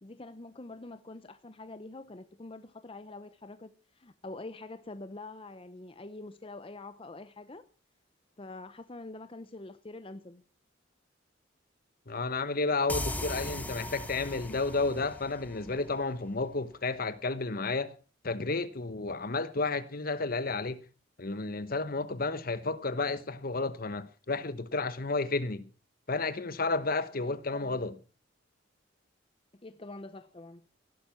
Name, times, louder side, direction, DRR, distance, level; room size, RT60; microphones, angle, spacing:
voice 1, 0.0-7.7 8.4-10.4 27.3-27.8 29.5-30.7, left 2 dB, 30° left, 0.7 m, -45 dB
voice 2, 12.1-17.9 18.2-20.8 21.2-25.7 26.1-27.9, left 3 dB, 50° left, 1.1 m, -32 dB
sound 1, 12.9-16.4, left 1 dB, 10° left, 1.3 m, -38 dB
16.5 x 12.0 x 5.8 m
head